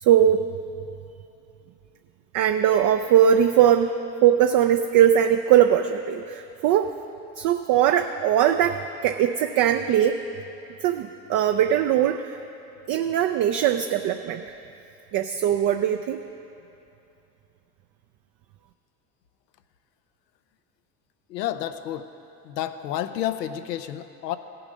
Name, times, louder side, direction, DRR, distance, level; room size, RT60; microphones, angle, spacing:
voice 1, 0.0-0.4 2.3-3.9 4.2-6.9 7.4-10.2 10.8-12.4 12.9-14.4 15.1-16.2, right 10 dB, 45° right, 7 dB, 0.5 m, -20 dB
voice 2, 21.3-22.1 22.4-24.4, left 12 dB, 90° left, 11 dB, 0.7 m, -30 dB
15.5 x 6.9 x 5.1 m, 2.8 s
hypercardioid pair, 85°, 48 cm